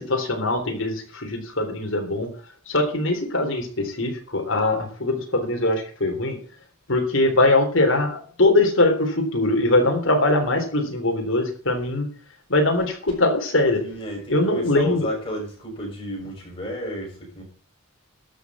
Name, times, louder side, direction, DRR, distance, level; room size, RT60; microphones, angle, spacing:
voice 1, 0.0-2.3 2.7-6.4 6.9-12.1 12.5-13.8 14.3-15.1, left 2 dB, 60° left, 3 dB, 3.5 m, -22 dB
voice 2, 13.8-17.4, equal, 25° left, -2 dB, 6.8 m, -32 dB
12.5 x 6.4 x 7.2 m, 0.42 s
head